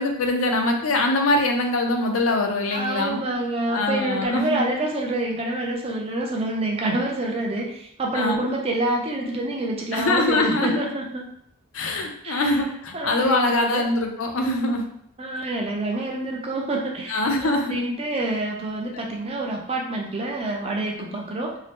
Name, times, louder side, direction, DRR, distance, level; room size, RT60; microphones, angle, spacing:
voice 1, 0.0-3.2 3.7-4.7 8.1-8.4 9.9-10.8 11.7-14.9 17.1-17.8, left 2 dB, 75° left, 3 dB, 0.5 m, -23 dB
voice 2, 2.7-11.3 12.2-12.6 12.9-13.8 15.2-21.6, right 2 dB, 30° right, 0 dB, 0.4 m, -27 dB
2.7 x 2.0 x 3.4 m, 0.71 s
head